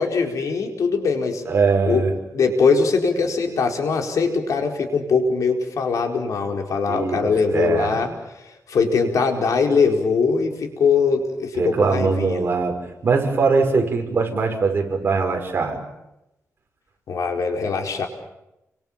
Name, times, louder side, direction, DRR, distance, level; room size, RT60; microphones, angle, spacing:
voice 1, 0.0-1.4 1.9-2.0 2.3-8.1 8.4-12.4 17.1-18.1, left 5 dB, 75° left, 3 dB, 4.6 m, -21 dB
voice 2, 1.4-2.1 6.9-7.2 7.5-8.0 11.5-12.8 13.0-15.8, right 4 dB, 40° right, 2 dB, 6.1 m, -21 dB
30.0 x 25.0 x 7.4 m, 0.90 s
wide cardioid pair, 135°, 6 cm